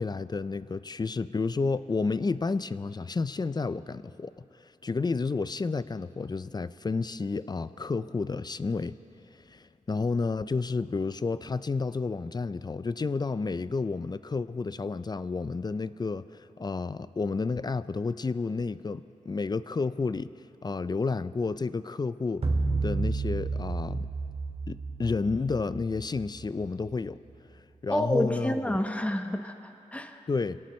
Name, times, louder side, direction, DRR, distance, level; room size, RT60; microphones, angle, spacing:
voice 1, 0.0-9.0 9.3-20.3 20.6-22.4 22.8-24.1 24.7-27.2 27.8-28.8 30.3-30.6, left 4 dB, 30° left, 14 dB, 0.4 m, -31 dB
sound 1, 22.4-26.9, right 3 dB, 50° right, 2.0 m, -31 dB
voice 2, 27.9-30.2, left 1 dB, 10° left, 5 dB, 1.1 m, -29 dB
25.0 x 17.5 x 3.2 m, 2.7 s
cardioid pair, 75°, 14 cm